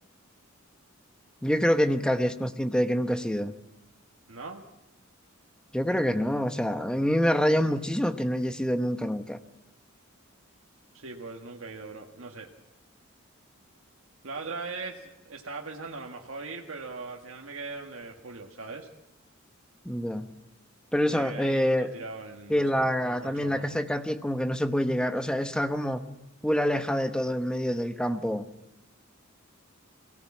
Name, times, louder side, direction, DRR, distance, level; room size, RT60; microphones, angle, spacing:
voice 1, 1.4-3.5 5.7-9.4 19.8-20.3 20.9-21.9 22.5-26.0 26.4-28.4, equal, 5° left, 8 dB, 0.9 m, -26 dB
voice 2, 4.3-4.6 10.9-12.5 14.2-18.9 21.0-23.8, right 3 dB, 75° right, 1 dB, 1.6 m, -40 dB
23.5 x 17.0 x 7.3 m, 0.93 s
head